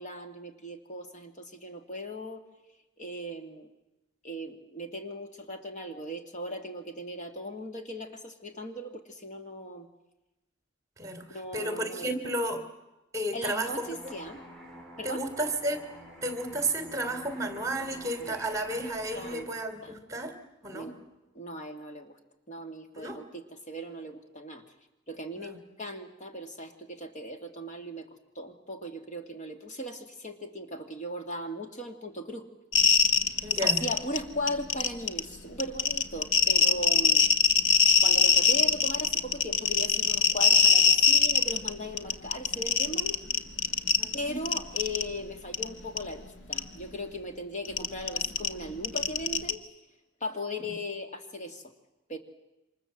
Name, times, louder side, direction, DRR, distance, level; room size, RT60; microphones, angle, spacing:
voice 1, 0.0-2.4 3.0-3.7 4.2-9.9 11.3-12.3 13.3-14.4 15.0-15.3 18.2-18.3 19.1-19.5 19.8-20.0 20.7-20.9 21.3-22.2 22.5-24.6 25.1-28.1 28.4-32.4 33.2-37.2 38.0-43.2 44.1-49.6 50.2-51.6 52.1-52.2, equal, 40° left, 5 dB, 2.4 m, -38 dB
voice 2, 11.0-12.6 13.1-13.9 15.0-15.8 16.2-20.3 20.6-20.9 22.9-23.2 25.4-25.6 33.4-33.8 44.0-44.4 50.6-50.7, right 1 dB, 15° right, 7 dB, 3.2 m, -32 dB
sound 1, 13.6-19.4, equal, 5° left, 5.9 m, -48 dB
sound 2, 32.7-34.2 34.5-35.2 35.6-41.7 42.0-44.1 44.5-45.0 45.5-45.6 46.0-46.1 46.5-46.6 47.6-49.5, left 6 dB, 75° left, 1.7 m, -21 dB
28.5 x 26.0 x 7.6 m, 0.98 s
head